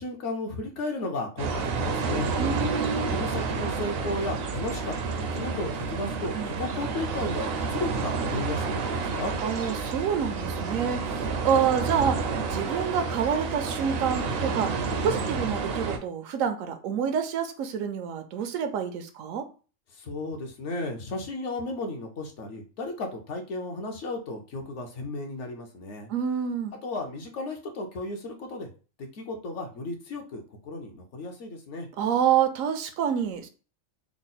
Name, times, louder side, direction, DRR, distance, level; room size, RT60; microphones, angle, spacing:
voice 1, 0.0-2.3 3.1-9.3 19.9-26.1 26.8-28.7 29.0-31.9, left 2 dB, 70° left, 2 dB, 0.9 m, -34 dB
sound 1, 1.4-16.0, right 4 dB, 65° right, 0.6 m, -30 dB
voice 2, 2.4-3.1 6.3-6.6 9.4-19.5 26.1-26.7 32.0-33.5, right 7 dB, 85° right, 8 dB, 1.0 m, -28 dB
3.6 x 2.0 x 3.9 m, 0.35 s
omnidirectional pair, 1.3 m